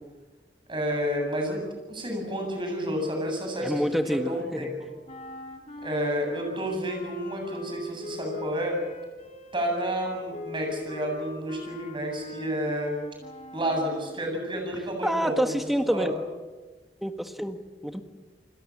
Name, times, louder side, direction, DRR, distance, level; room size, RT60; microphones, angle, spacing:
voice 1, 0.7-1.6 1.9-4.7 5.8-8.8 9.5-13.0 13.5-15.6 15.9-16.1, equal, 30° right, 2 dB, 8.0 m, -30 dB
voice 2, 3.6-4.7 15.0-16.1 17.0-17.6 17.8-18.0, equal, ahead, 7 dB, 1.6 m, -27 dB
sound 1, 5.1-14.2, left 1 dB, 40° left, 2.7 m, -42 dB
29.5 x 21.0 x 7.4 m, 1.3 s
head